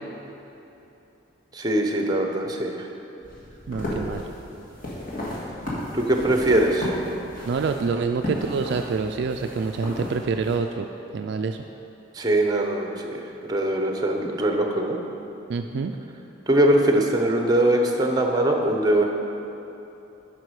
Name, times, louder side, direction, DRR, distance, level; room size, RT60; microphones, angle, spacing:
voice 1, 1.5-2.9 5.9-6.9 12.1-13.2 13.5-15.0 16.5-19.0, right 1 dB, 20° right, 2 dB, 0.7 m, -21 dB
sound 1, 3.2-10.6, left 1 dB, 45° left, 1.9 m, -34 dB
voice 2, 3.7-4.3 7.4-10.9 11.1-11.6 15.5-16.0, right 4 dB, 55° right, 5 dB, 0.3 m, -26 dB
10.5 x 5.7 x 4.8 m, 3.0 s
head